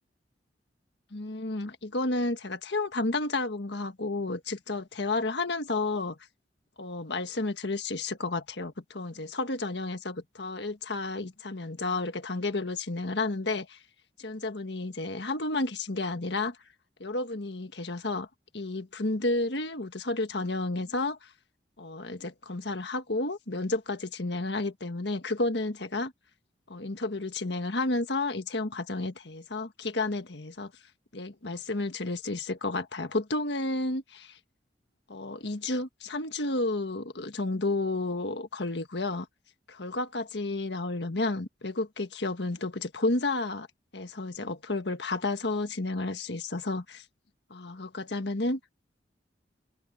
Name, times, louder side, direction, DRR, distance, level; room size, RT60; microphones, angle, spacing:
voice 1, 1.1-6.2 6.8-13.8 14.2-16.6 17.0-18.3 18.5-21.3 21.8-26.1 26.7-30.7 31.1-34.4 35.1-39.3 39.7-43.7 43.9-47.0 47.5-48.6, left 2 dB, 70° left, 1.6 m, -31 dB
open air
head